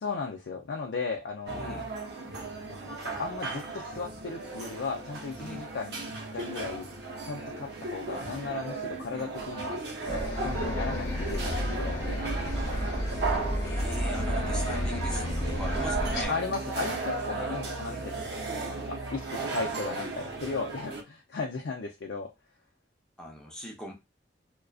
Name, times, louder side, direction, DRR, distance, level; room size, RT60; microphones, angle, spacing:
voice 1, 0.0-1.8 2.7-6.0 6.3-6.9 7.2-9.8 10.1-12.2 16.3-22.3, left 4 dB, 80° left, 0.4 m, -36 dB
voice 2, 1.5-1.9 5.4-5.7 13.6-16.4 17.9-18.1 23.2-23.9, equal, 5° left, 0.6 m, -40 dB
sound 1, 1.5-21.0, right 3 dB, 65° right, 0.6 m, -35 dB
Bus, 10.1-16.3, left 1 dB, 30° left, 1.0 m, -31 dB
2.4 x 2.2 x 2.3 m
head